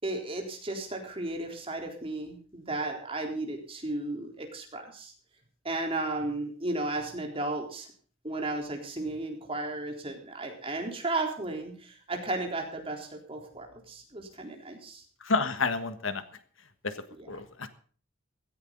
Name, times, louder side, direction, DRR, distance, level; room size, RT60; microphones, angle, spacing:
voice 1, 0.0-5.1 5.6-7.9 8.2-15.0 17.1-17.3, right 2 dB, 30° right, 2 dB, 3.9 m, -34 dB
voice 2, 15.2-16.2 16.8-16.9 17.3-17.7, left 4 dB, 80° left, 10 dB, 1.5 m, -29 dB
16.5 x 15.0 x 4.0 m, 0.43 s
head